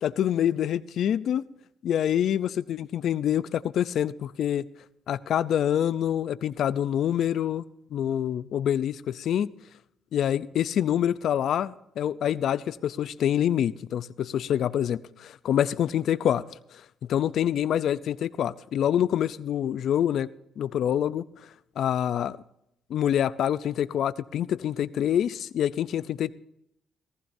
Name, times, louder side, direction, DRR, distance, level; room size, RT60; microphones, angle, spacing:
voice 1, 0.0-1.4 1.8-4.6 5.1-7.6 7.9-9.5 10.1-16.4 17.1-20.3 20.6-21.2 21.8-22.4 22.9-26.4, left 10 dB, 70° left, 0.5 m, -26 dB
19.0 x 15.0 x 2.7 m
cardioid pair, 90°, 0 cm